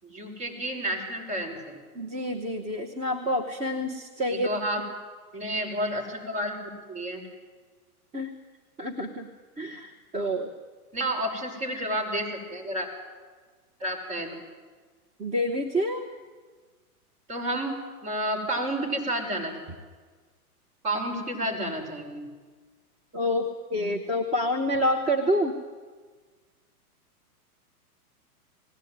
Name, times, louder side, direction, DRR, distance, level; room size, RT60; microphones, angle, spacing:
voice 1, 0.0-1.8 4.4-4.8 5.3-7.2 10.9-12.9 13.8-14.3 17.3-19.5 20.8-22.3, right 1 dB, 35° right, -1 dB, 6.3 m, -30 dB
voice 2, 1.9-4.5 8.1-8.3 8.8-9.3 9.6-10.5 15.2-16.1 23.1-25.6, equal, 15° right, 4 dB, 1.0 m, -28 dB
20.0 x 17.0 x 9.3 m, 1.4 s
hypercardioid pair, 140°, 45 cm